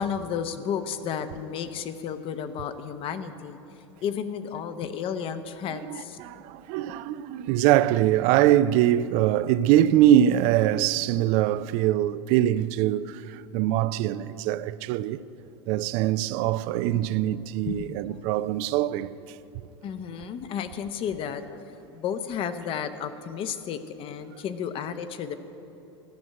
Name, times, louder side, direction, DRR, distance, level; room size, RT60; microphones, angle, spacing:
voice 1, 0.0-3.6 4.0-6.2 16.9-17.0 17.6-17.9 19.8-21.6 21.9-25.3, left 7 dB, 40° left, 0.8 m, -32 dB
voice 2, 5.7-15.2 15.7-19.7, right 12 dB, 50° right, 0.4 m, -23 dB
14.0 x 6.3 x 8.9 m
hypercardioid pair, 90°, 15 cm